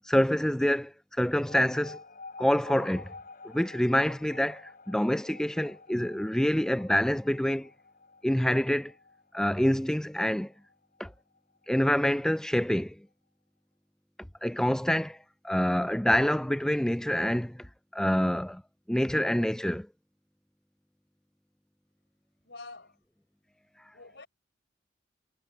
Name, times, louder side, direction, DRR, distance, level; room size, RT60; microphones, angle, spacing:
voice 1, 0.1-2.0 2.4-3.1 3.4-4.6 4.9-7.7 8.2-8.9 9.3-10.5 11.0-11.1 11.7-13.0 14.4-15.2 15.4-17.7 17.9-18.6 18.9-19.9, equal, 5° left, 0.4 m, -26 dB
sound 1, 1.3-12.3, left 4 dB, 50° left, 6.5 m, -50 dB
voice 2, 22.4-23.0 23.9-24.3, left 3 dB, 70° left, 5.7 m, -46 dB
head